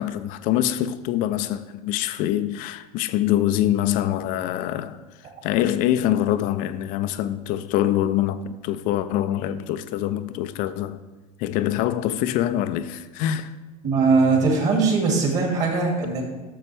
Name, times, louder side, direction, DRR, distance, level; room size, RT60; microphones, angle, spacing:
voice 1, 0.0-5.0 5.4-11.0 11.4-13.5, left 12 dB, 45° left, 0.6 m, -24 dB
voice 2, 13.8-16.2, right 4 dB, 40° right, 2.4 m, -20 dB
12.5 x 6.7 x 3.4 m
figure-of-eight pair, 85°, 19 cm